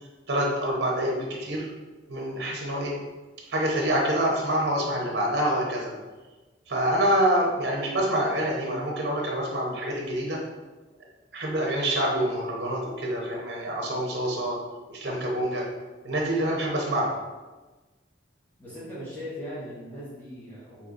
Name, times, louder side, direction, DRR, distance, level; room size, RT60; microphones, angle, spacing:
voice 1, 0.3-1.7 2.1-2.9 3.5-5.9 6.7-10.4 11.3-14.6 14.9-15.6 16.0-17.2, right 1 dB, 55° right, -1 dB, 0.9 m, -26 dB
voice 2, 18.6-20.9, equal, 10° left, -10 dB, 1.2 m, -39 dB
5.3 x 2.9 x 2.5 m, 1.2 s
head